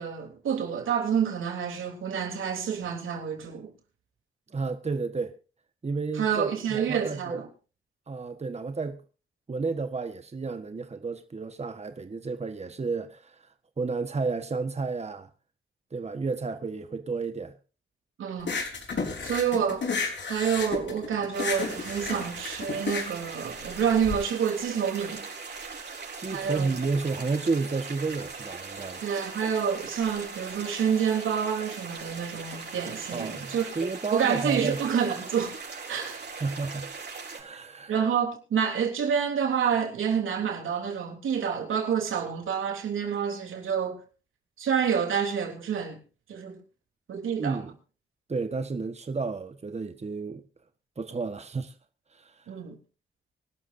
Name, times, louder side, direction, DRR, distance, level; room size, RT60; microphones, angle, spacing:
voice 1, 0.0-3.7 6.1-7.5 18.2-18.6 19.2-25.3 26.3-26.7 29.0-33.9 34.1-35.6 35.9-36.2 37.9-44.0 44.6-46.0 46.3-46.6 47.1-47.6 52.5-52.8, right 7 dB, 85° right, 3.4 m, -28 dB
voice 2, 4.5-5.3 5.8-7.4 8.1-9.0 9.5-13.4 13.8-15.3 15.9-17.5 26.1-29.0 33.1-34.8 36.4-36.9 37.3-37.9 47.4-47.7 48.3-50.4 51.0-51.7 52.1-52.4, right 4 dB, 35° right, 1.4 m, -31 dB
sound 1, 18.4-24.2, left 4 dB, 65° left, 4.1 m, -32 dB
sound 2, 21.3-37.4, right 4 dB, 60° right, 6.7 m, -40 dB
25.0 x 12.5 x 2.7 m
cardioid pair, 65°, 20 cm